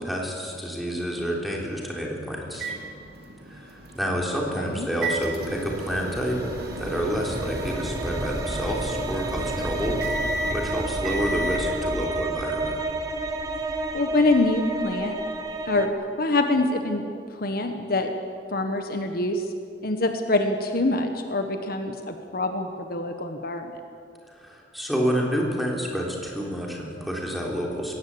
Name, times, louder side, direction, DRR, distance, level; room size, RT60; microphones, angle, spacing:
voice 1, 0.0-2.7 3.5-6.4 6.8-12.7 24.3-28.0, equal, ahead, -2 dB, 3.7 m, -29 dB
sound 1, 2.5-11.6, right 2 dB, 60° right, 2.1 m, -34 dB
voice 2, 4.3-4.9 13.9-15.2 15.7-15.9 16.2-17.1 17.4-18.1 18.5-19.4 19.8-23.7, left 2 dB, 55° left, 6 dB, 1.4 m, -25 dB
sound 2, 5.1-15.9, right 2 dB, 20° right, 1.6 m, -31 dB
20.5 x 17.0 x 8.7 m, 2.3 s
head